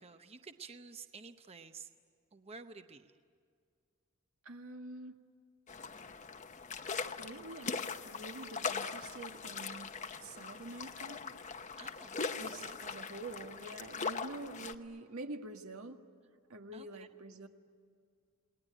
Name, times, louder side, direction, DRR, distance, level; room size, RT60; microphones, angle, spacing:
voice 1, 0.0-1.9 2.3-3.1 11.8-12.8 16.7-17.1, right 4 dB, 30° right, 8 dB, 0.8 m, -51 dB
voice 2, 4.4-5.2 7.2-7.8 8.0-9.9 10.2-11.2 12.4-16.0 16.5-17.5, right 2 dB, 85° right, 4 dB, 1.8 m, -46 dB
sound 1, 5.7-14.7, left 5 dB, 35° left, 0.9 m, -41 dB
29.0 x 20.0 x 9.9 m, 2.1 s
head